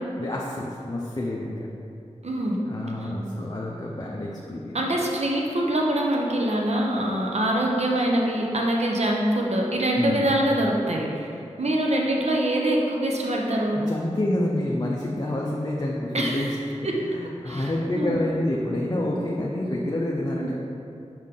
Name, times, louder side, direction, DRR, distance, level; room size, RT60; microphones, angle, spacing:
voice 1, 0.2-1.6 2.7-4.8 10.0-10.3 13.9-16.5 17.0-20.5, left 1 dB, 35° left, -3 dB, 0.6 m, -28 dB
voice 2, 2.2-2.6 4.7-11.3 11.6-13.8 16.1-16.6 16.8-17.0 17.5-18.2 20.4-20.5, right 1 dB, 60° right, -1 dB, 0.9 m, -24 dB
5.8 x 5.2 x 3.7 m, 2.6 s
wide cardioid pair, 70°, 12 cm